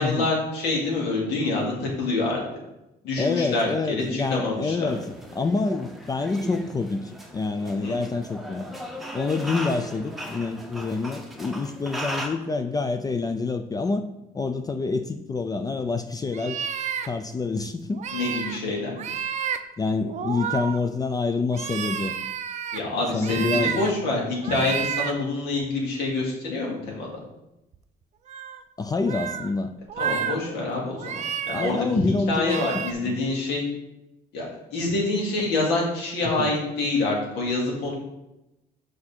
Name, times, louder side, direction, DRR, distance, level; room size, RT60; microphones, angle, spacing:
voice 1, 0.0-2.4 3.0-4.9 7.8-8.0 18.1-19.0 22.7-27.2 30.0-31.1 31.5-33.7 34.3-34.5 34.7-38.0, left 2 dB, 80° left, -2 dB, 2.4 m, -26 dB
voice 2, 3.2-5.0 5.4-8.7 9.1-14.1 14.3-16.6 17.1-18.0 19.8-22.1 23.1-23.8 28.8-29.7 31.5-32.6 33.0-33.2 36.4-36.5, left 3 dB, 20° left, 8 dB, 0.4 m, -27 dB
sound 1, 4.9-12.3, equal, ahead, 1.1 m, -37 dB
sound 2, 16.3-17.1 17.9-18.6 19.0-19.6 20.1-21.0 21.5-22.8 23.2-23.9 24.4-25.1 25.6-25.7 27.7-27.8 28.3-28.6 29.0-29.5 29.9-30.4 30.9-31.7 32.4-32.9, right 8 dB, 45° right, 0.5 m, -30 dB
6.6 x 4.8 x 4.4 m, 0.92 s
cardioid pair, 110°, 17 cm